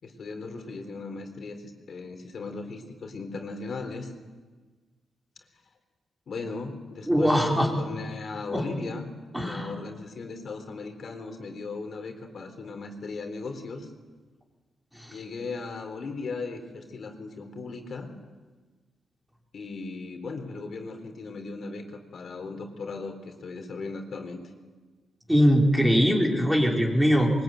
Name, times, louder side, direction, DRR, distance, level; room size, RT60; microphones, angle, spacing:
voice 1, 0.0-4.1 6.3-9.1 9.4-13.9 15.1-18.1 19.5-24.4, left 3 dB, 55° left, 5 dB, 4.1 m, -37 dB
voice 2, 7.1-7.7 8.5-8.6 9.3-9.7 15.0-15.1 25.3-27.3, equal, 5° right, 0 dB, 4.1 m, -21 dB
23.5 x 22.5 x 9.3 m, 1.4 s
cardioid pair, 105°, 0 cm